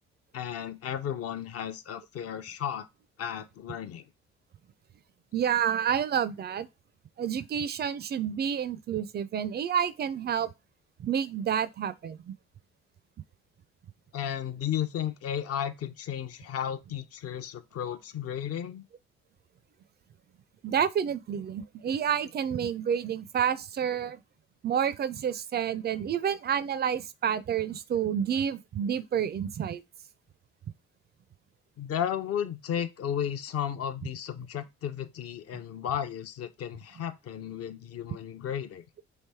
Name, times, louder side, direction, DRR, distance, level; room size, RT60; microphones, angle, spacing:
voice 1, 0.3-2.9 3.2-4.0 14.1-18.8 31.8-38.8, left 9 dB, 45° left, 0.6 m, -34 dB
voice 2, 5.3-6.7 7.2-10.5 11.0-12.3 20.6-24.2 24.6-29.8, right 8 dB, 30° right, 0.4 m, -29 dB
3.3 x 3.1 x 4.3 m
figure-of-eight pair, 50°, 34 cm